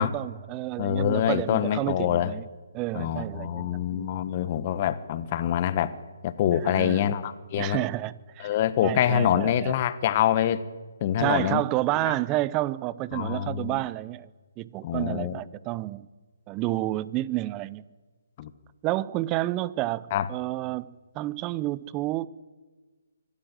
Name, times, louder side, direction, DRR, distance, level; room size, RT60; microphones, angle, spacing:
voice 1, 0.0-2.5 2.7-4.1 6.6-7.1 7.6-8.5 8.8-9.8 11.2-14.3 14.6-16.1 16.5-17.8 18.8-20.9 21.1-22.3, right 17 dB, 20° right, 0.6 m, -30 dB
voice 2, 0.8-2.3 2.9-5.9 6.2-7.8 8.4-10.6 11.0-11.6 12.0-12.1 13.1-13.8 14.8-15.4 18.4-18.5 20.1-20.3, left 10 dB, 35° left, 1.2 m, -25 dB
24.5 x 12.5 x 9.0 m
hypercardioid pair, 150°, 0 cm